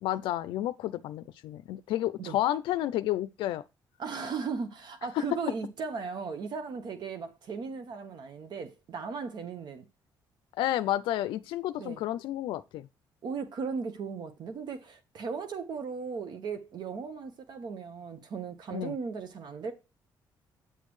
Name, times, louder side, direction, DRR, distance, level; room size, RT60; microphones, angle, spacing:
voice 1, 0.0-3.6 5.1-5.2 10.5-12.9 18.7-18.9, left 13 dB, 85° left, 0.4 m, -31 dB
voice 2, 4.0-9.9 11.8-12.0 13.2-19.7, right 5 dB, 60° right, 1.1 m, -37 dB
9.0 x 6.3 x 3.1 m
cardioid pair, 95°, 8 cm